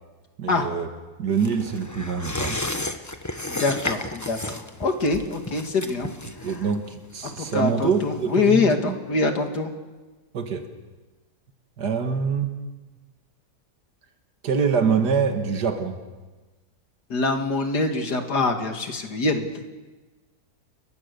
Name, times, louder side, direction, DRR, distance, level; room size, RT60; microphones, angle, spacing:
voice 1, 0.4-0.9 1.2-2.6 6.3-9.0 10.3-10.7 11.8-12.5 14.4-16.0, right 6 dB, 75° right, 5 dB, 2.3 m, -25 dB
sound 1, 1.4-8.4 8.7-8.8, left 1 dB, 10° left, 1.0 m, -33 dB
voice 2, 3.4-6.1 6.4-6.6 7.2-9.7 17.1-19.6, left 3 dB, 75° left, 5 dB, 2.7 m, -24 dB
29.5 x 22.5 x 6.9 m, 1.3 s
omnidirectional pair, 1.8 m